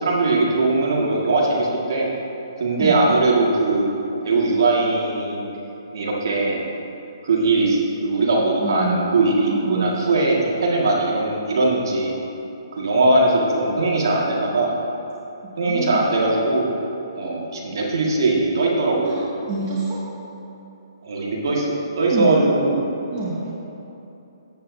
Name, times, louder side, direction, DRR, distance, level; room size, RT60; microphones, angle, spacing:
voice 1, 0.0-2.1 2.6-3.9 4.2-5.4 5.9-6.6 7.2-12.1 12.7-14.7 15.6-16.7 17.2-19.2 21.0-22.8, right 2 dB, 60° right, -3 dB, 1.8 m, -20 dB
voice 2, 8.6-9.2 9.5-10.0 15.6-16.0 19.0-20.0 22.1-22.4 23.1-23.4, right 3 dB, 25° right, -8 dB, 1.8 m, -27 dB
14.0 x 8.5 x 2.7 m, 2.9 s
figure-of-eight pair, 140°, 2 cm